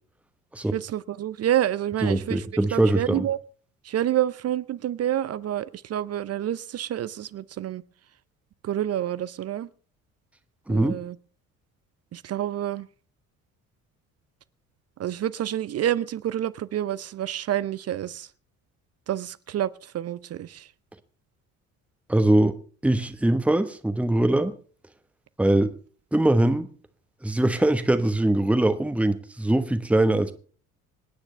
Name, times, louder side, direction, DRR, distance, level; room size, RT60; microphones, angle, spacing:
voice 1, 0.7-3.4 3.8-7.8 8.6-9.7 10.7-11.2 12.1-12.9 15.0-18.3 19.1-20.7, right 11 dB, 35° right, 0.6 m, -28 dB
voice 2, 2.0-3.3 10.7-11.0 22.1-22.6 22.8-24.5 25.4-25.7 26.1-26.7 27.2-30.3, right 1 dB, 5° right, 1.1 m, -22 dB
25.5 x 9.7 x 3.3 m
figure-of-eight pair, 50°, 42 cm